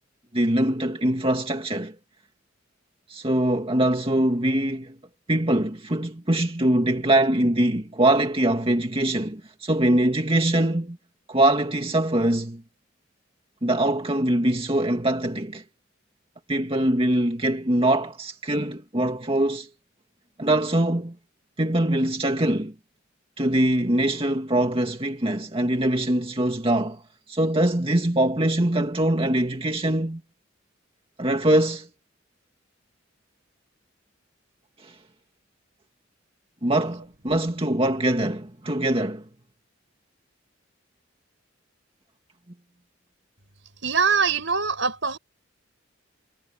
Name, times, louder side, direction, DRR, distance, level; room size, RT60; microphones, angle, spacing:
voice 1, 0.3-1.9 3.1-4.9 5.3-11.0 11.3-12.6 13.6-15.6 16.5-19.7 20.4-21.2 21.6-22.7 23.4-27.0 27.3-30.2 31.2-31.9 34.8-35.0 36.6-39.2, right 1 dB, 25° right, 2.1 m, -23 dB
voice 2, 43.8-45.2, right 5 dB, 65° right, 6.7 m, -23 dB
head